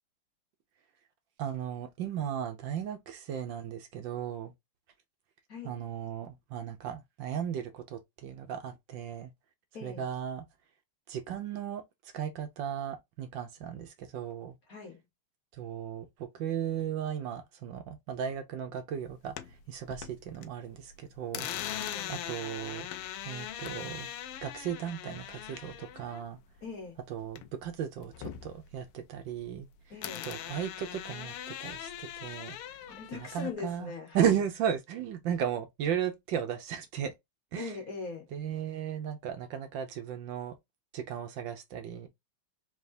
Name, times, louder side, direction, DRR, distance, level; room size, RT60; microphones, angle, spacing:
voice 1, 1.4-4.5 5.6-9.3 9.8-10.5 11.1-14.5 15.5-21.5 22.1-22.9 23.2-24.1 24.4-26.4 27.1-29.7 30.2-32.8 33.1-37.1 37.5-37.8 38.3-40.6 40.9-42.1, right 9 dB, 70° right, 1.3 m, -35 dB
voice 2, 9.7-10.1 14.7-15.0 21.8-22.2 26.6-27.0 29.9-30.3 32.9-34.3 37.6-38.3, left 5 dB, 50° left, 1.3 m, -41 dB
sound 1, 19.0-20.5 20.8-27.7 28.0-29.7 30.0-33.5, left 11 dB, 85° left, 1.5 m, -41 dB
4.0 x 3.5 x 2.6 m
omnidirectional pair, 2.4 m